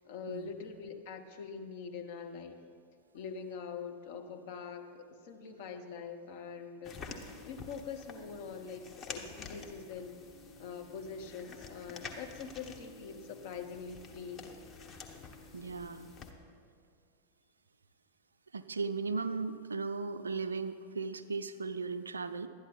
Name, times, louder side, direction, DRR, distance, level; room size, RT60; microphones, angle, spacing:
voice 1, 0.0-2.6 3.1-7.1 7.4-10.2 10.6-14.5, left 6 dB, 50° left, 4 dB, 1.0 m, -44 dB
sound 1, 6.8-16.3, left 4 dB, 30° left, 1.1 m, -49 dB
voice 2, 15.5-16.1 18.5-22.5, right 4 dB, 75° right, 10 dB, 0.5 m, -36 dB
12.0 x 9.9 x 4.0 m, 2.4 s
figure-of-eight pair, 90°, 0 cm